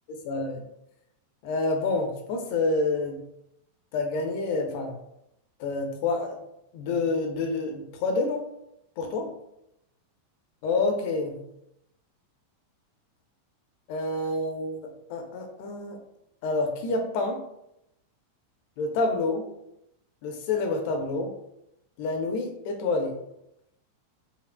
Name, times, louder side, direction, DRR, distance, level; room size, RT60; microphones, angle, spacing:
voice 1, 0.1-0.6 1.4-3.2 3.9-5.0 5.6-6.4 6.7-8.4 9.0-9.4 10.6-11.4 13.9-16.0 16.4-17.5 18.8-19.5 20.2-21.4 22.0-23.1, left 3 dB, 45° left, 4 dB, 0.7 m, -28 dB
4.8 x 2.4 x 2.2 m, 0.82 s
figure-of-eight pair, 90°, 0 cm